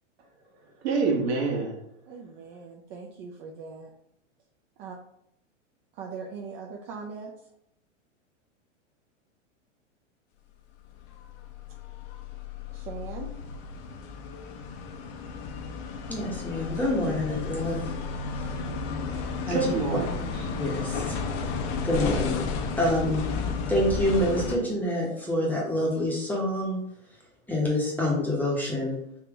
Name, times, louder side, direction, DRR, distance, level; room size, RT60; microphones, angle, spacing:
voice 1, 0.8-1.7 18.7-18.8 19.0-20.1, right 4 dB, 60° right, 1 dB, 1.3 m, -27 dB
voice 2, 2.1-3.9 4.8-5.0 5.9-7.3 12.7-13.3, right 5 dB, 35° right, 0 dB, 0.5 m, -40 dB
sound 1, 11.0-24.6, left 5 dB, 35° left, 0.6 m, -33 dB
voice 3, 16.1-17.8 19.5-20.0 20.6-21.2 21.8-22.5 22.8-23.3 23.7-26.8 27.5-29.0, left 1 dB, 5° left, -3 dB, 0.8 m, -27 dB
3.5 x 2.8 x 3.4 m, 0.76 s
hypercardioid pair, 120°, 38 cm